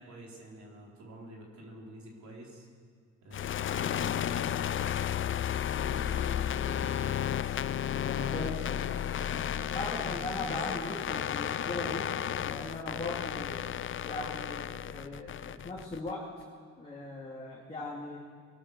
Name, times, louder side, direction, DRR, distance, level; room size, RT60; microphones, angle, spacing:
voice 1, 0.0-2.7 3.2-3.4 3.7-5.3 5.7-7.6 8.2-8.5 9.1-10.6, right 1 dB, 65° right, -2 dB, 4.0 m, -48 dB
sound 1, 3.3-16.1, left 10 dB, 40° left, 0.5 m, -33 dB
voice 2, 8.0-9.0 9.7-12.1 12.4-13.7 14.0-16.3 16.8-18.2, left 2 dB, 20° left, -4 dB, 2.8 m, -39 dB
23.0 x 12.5 x 4.8 m, 2.2 s
cardioid pair, 90°, 30 cm